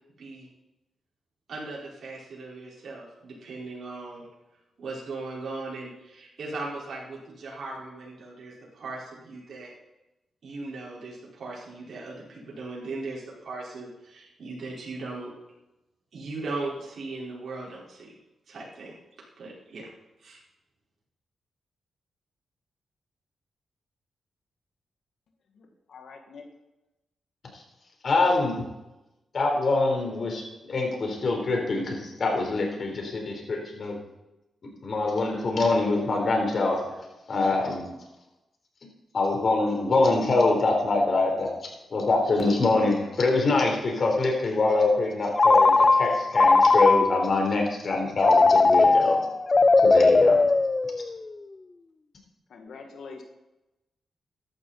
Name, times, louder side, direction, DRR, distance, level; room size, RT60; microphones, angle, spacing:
voice 1, 1.5-4.2 4.8-9.7 10.4-15.3 16.1-18.1 18.5-18.9 19.4-19.8 20.2-20.4, right 3 dB, 65° right, -5 dB, 4.7 m, -38 dB
voice 2, 25.5-26.5 52.5-53.2, left 4 dB, 75° left, 3 dB, 2.0 m, -44 dB
voice 3, 28.0-28.6 29.3-34.0 34.8-37.8 39.1-49.2 49.8-50.4, left 3 dB, 55° left, 1 dB, 4.1 m, -24 dB
Telephone, 45.4-47.4 48.2-51.3, left 3 dB, 30° left, 0.6 m, -19 dB
14.5 x 11.5 x 4.3 m, 0.98 s
cardioid pair, 85°, 0 cm